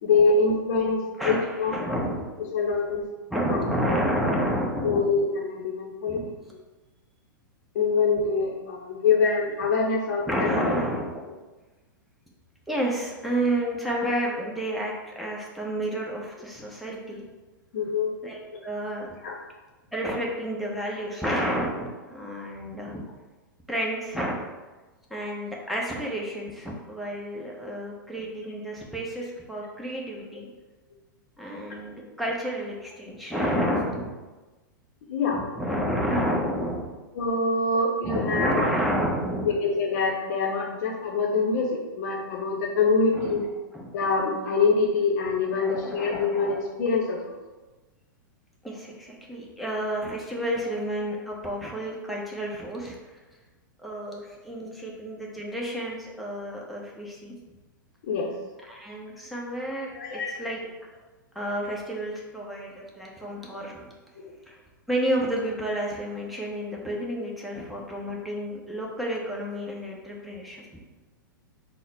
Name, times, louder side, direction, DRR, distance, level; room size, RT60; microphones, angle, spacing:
voice 1, 0.0-1.8 2.5-3.1 3.5-3.6 3.9-4.0 4.8-6.2 6.5-6.6 7.7-10.8 17.7-18.1 18.5-18.6 19.2-19.4 27.6-27.8 35.1-35.4 37.1-38.6 39.4-43.5 43.9-47.4 58.0-58.3 59.9-60.5 64.2-64.3, left 4 dB, 55° left, -1 dB, 0.6 m, -25 dB
voice 2, 1.2-2.2 2.7-2.9 3.3-5.1 6.1-6.3 8.2-8.3 10.3-11.2 12.7-17.3 18.2-19.1 19.9-23.0 23.7-24.4 25.1-30.5 31.4-34.1 35.3-36.9 38.0-39.5 43.1-43.4 43.7-43.9 45.6-46.5 48.6-53.0 53.8-57.3 58.7-60.6 61.3-63.9 64.5-64.6 64.9-70.6, equal, ahead, -3 dB, 0.7 m, -30 dB
3.9 x 2.0 x 3.9 m, 1.2 s
hypercardioid pair, 105°, 11 cm